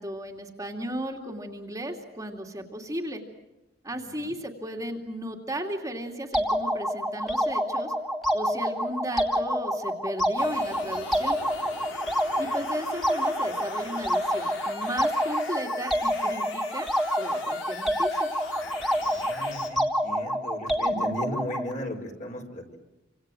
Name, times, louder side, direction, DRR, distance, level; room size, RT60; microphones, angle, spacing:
voice 1, 0.0-3.2 3.8-7.9 8.3-11.4 12.4-18.3, equal, 15° right, 2 dB, 2.7 m, -35 dB
sound 1, 6.3-21.7, equal, ahead, 2.8 m, -28 dB
sound 2, 10.4-19.7, left 4 dB, 80° left, 5.0 m, -41 dB
voice 2, 19.0-22.8, equal, 40° left, 3 dB, 5.4 m, -36 dB
28.5 x 26.5 x 7.8 m, 0.98 s
head